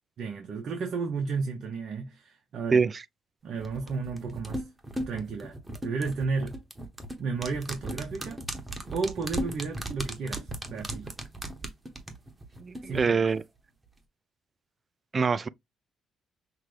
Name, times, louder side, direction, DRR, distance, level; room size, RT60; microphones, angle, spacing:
voice 1, 0.2-2.8 3.4-4.6 5.1-5.6 5.8-6.6 7.2-8.4 8.9-11.1 12.8-13.3, right 4 dB, 65° right, 0.9 m, -33 dB
voice 2, 2.7-3.0 12.6-13.4 15.1-15.5, right 5 dB, 35° right, 0.3 m, -24 dB
sound 1, 3.6-13.0 13.3-13.4, right 1 dB, 20° right, 1.1 m, -37 dB
5.8 x 2.2 x 3.2 m
cardioid pair, 90°, 0 cm